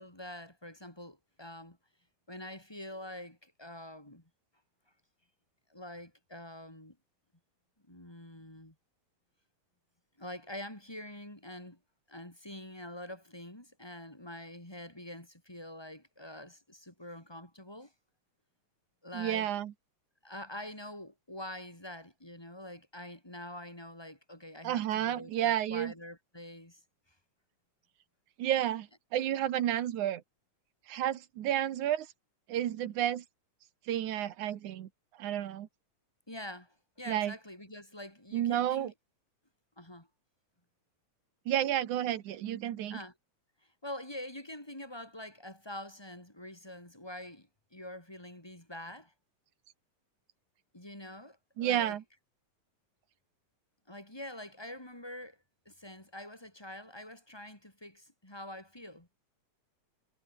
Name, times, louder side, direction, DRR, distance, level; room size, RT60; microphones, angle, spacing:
voice 1, 0.0-1.8 2.3-4.2 5.7-7.0 7.9-8.7 10.2-11.8 12.1-17.9 19.0-19.5 20.2-26.8 36.3-38.9 39.8-40.1 42.9-43.1 43.6-49.1 50.7-52.0 53.9-55.4 55.6-59.3, left 1 dB, 10° left, 4.4 m, -45 dB
voice 2, 19.1-19.7 24.6-25.9 28.4-30.2 30.9-32.1 32.5-33.2 33.9-34.9 35.2-35.7 37.1-37.3 38.3-38.9 41.5-43.0 51.6-52.0, right 11 dB, 80° right, 2.8 m, -31 dB
omnidirectional pair, 3.4 m